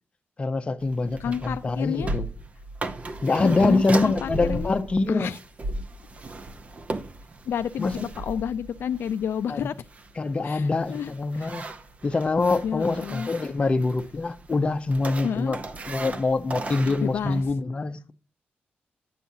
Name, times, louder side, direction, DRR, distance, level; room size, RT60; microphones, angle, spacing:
voice 1, 0.4-2.3 3.2-5.3 7.8-8.1 9.5-9.7 10.2-11.7 12.0-15.6 15.9-18.1, left 3 dB, 30° left, 0.7 m, -25 dB
sound 1, 0.8-17.5, right 2 dB, 35° right, 0.7 m, -36 dB
voice 2, 1.2-2.2 3.4-4.7 5.1-5.4 7.5-9.8 10.4-11.1 11.4-11.5 12.6-13.3 15.2-15.6 17.0-17.4, left 8 dB, 75° left, 0.3 m, -30 dB
10.0 x 7.0 x 2.7 m
wide cardioid pair, 130°, 4 cm